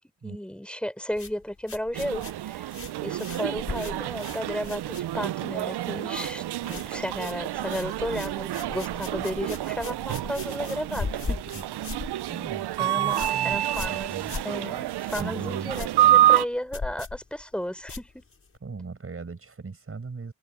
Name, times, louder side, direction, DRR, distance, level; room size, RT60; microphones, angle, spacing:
voice 1, 0.2-2.7 3.0-11.4 12.8-14.1 14.4-18.2, equal, ahead, 4.5 m, -34 dB
sound 1, 1.1-5.5 5.7-6.3 6.6-18.6, left 4 dB, 30° left, 6.5 m, -39 dB
sound 2, 1.9-16.5, right 13 dB, 55° right, 0.8 m, -28 dB
voice 2, 12.3-13.6 13.9-14.3 15.2-16.2 18.6-20.3, right 4 dB, 25° right, 6.2 m, -39 dB
cardioid pair, 90°, 48 cm